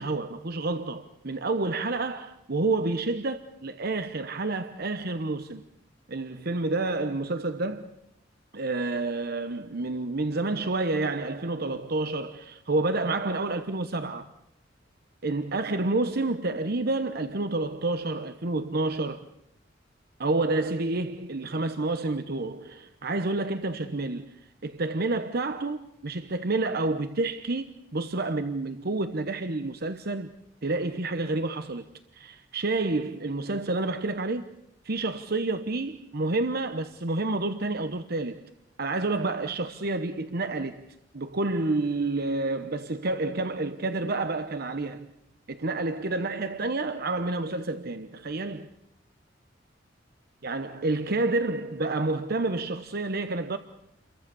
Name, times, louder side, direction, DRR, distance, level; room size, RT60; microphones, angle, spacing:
voice 1, 0.0-5.6 6.1-7.9 8.5-14.3 15.2-19.3 20.2-30.3 30.6-31.8 32.1-34.4 34.8-38.4 38.8-45.1 45.5-48.7 50.4-53.6, right 2 dB, 55° right, 1.0 m, -29 dB
30.0 x 23.0 x 7.0 m
head